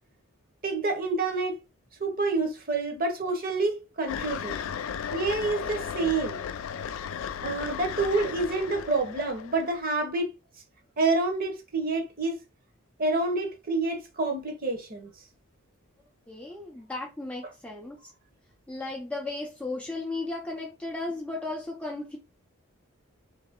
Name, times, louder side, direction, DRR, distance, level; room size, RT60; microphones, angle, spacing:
voice 1, 0.6-1.6 2.0-4.6 5.1-6.4 7.4-10.3 11.0-12.4 13.0-15.1, right 3 dB, 40° right, 0.9 m, -28 dB
sound 1, 4.1-9.8, left 8 dB, 65° left, 0.3 m, -35 dB
voice 2, 16.3-18.0 18.7-22.2, left 2 dB, 5° left, 0.5 m, -35 dB
3.3 x 3.2 x 3.6 m
head